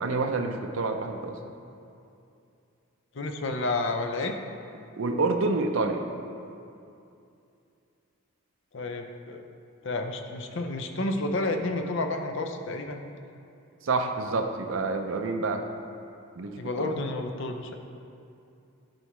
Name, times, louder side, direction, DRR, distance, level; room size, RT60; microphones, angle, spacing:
voice 1, 0.0-1.4 5.0-6.1 13.8-15.7 16.4-16.9, right 3 dB, 60° right, 5 dB, 0.5 m, -28 dB
voice 2, 3.1-4.4 8.7-9.4 9.8-13.0 16.6-17.8, left 2 dB, 55° left, 5 dB, 0.5 m, -30 dB
11.5 x 4.6 x 3.1 m, 2.6 s
head